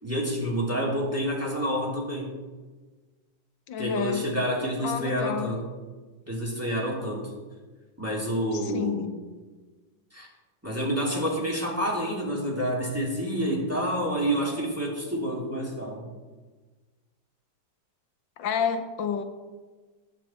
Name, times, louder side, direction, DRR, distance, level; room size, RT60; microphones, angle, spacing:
voice 1, 0.0-2.3 3.8-5.7 6.3-7.3 8.0-9.1 10.1-10.3 10.6-16.1, equal, 10° right, -4 dB, 2.8 m, -28 dB
voice 2, 3.7-4.4 4.8-5.6 8.5-9.2 18.4-19.2, left 7 dB, 85° left, 7 dB, 1.6 m, -30 dB
18.5 x 7.7 x 4.5 m, 1.3 s
omnidirectional pair, 2.0 m